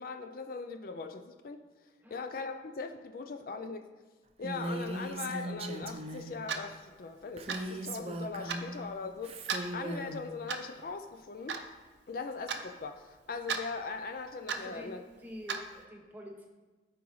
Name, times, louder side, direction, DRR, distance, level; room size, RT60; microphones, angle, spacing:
voice 1, 0.0-1.6 2.1-3.8 4.4-11.6 12.1-15.0, left 4 dB, 55° left, 6 dB, 0.4 m, -40 dB
Female speech woman speaking, 4.4-6.4 7.4-8.8 9.2-10.2, right 1 dB, 35° right, 0.5 m, -38 dB
Clock, 6.5-6.7 7.5-7.7 8.5-8.6 9.5-9.7 10.5-10.7 11.5-11.6 12.5-12.6 13.5-13.6 14.5-14.7 15.5-15.6, right 5 dB, 80° right, 0.7 m, -34 dB
voice 2, 14.5-16.5, equal, 10° right, 0 dB, 1.0 m, -47 dB
13.5 x 4.8 x 3.1 m, 1.3 s
head